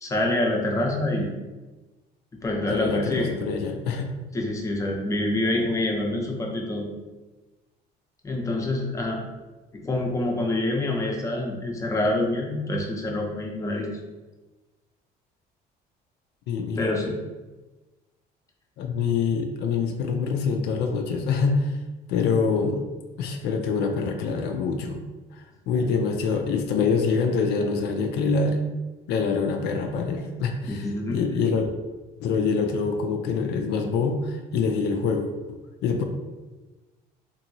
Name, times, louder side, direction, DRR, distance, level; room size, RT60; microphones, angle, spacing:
voice 1, 0.0-1.3 2.4-3.3 4.3-6.9 8.2-9.2 9.7-13.9 16.8-17.2 30.7-31.2, left 1 dB, 20° left, 0 dB, 0.6 m, -26 dB
voice 2, 2.7-4.1 16.5-16.9 18.8-21.7 22.1-22.8 23.2-25.1 25.7-28.6 29.1-30.8 31.1-31.7 32.2-35.3 35.8-36.0, left 5 dB, 80° left, 3 dB, 0.4 m, -25 dB
2.9 x 2.6 x 2.6 m, 1.2 s
cardioid pair, 110°, 17 cm